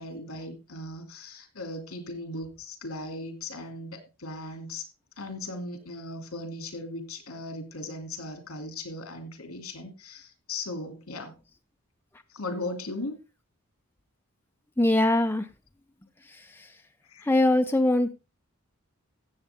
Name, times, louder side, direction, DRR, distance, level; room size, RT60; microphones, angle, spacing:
voice 1, 0.0-4.9 5.2-11.3 12.3-13.2 17.0-17.3, left 2 dB, 80° left, 2.8 m, -38 dB
voice 2, 14.8-15.5 16.3-16.7 17.2-18.1, left 1 dB, 10° left, 0.6 m, -23 dB
15.0 x 7.8 x 3.6 m
head